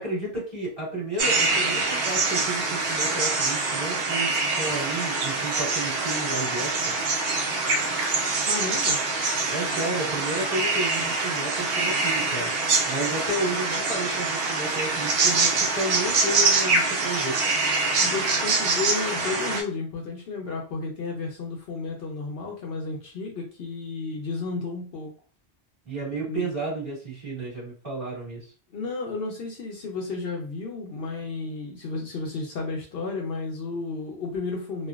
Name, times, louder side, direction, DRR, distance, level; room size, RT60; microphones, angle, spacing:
voice 1, 0.0-6.9 9.5-17.4 25.8-28.5, right 2 dB, 25° right, -7 dB, 1.6 m, -32 dB
sound 1, 1.2-19.6, right 3 dB, 65° right, 0.8 m, -25 dB
voice 2, 8.0-9.0 18.0-25.1 26.3-26.5 28.7-34.9, left 4 dB, 65° left, 0 dB, 0.8 m, -32 dB
3.1 x 2.2 x 2.3 m, 0.37 s
omnidirectional pair, 1.1 m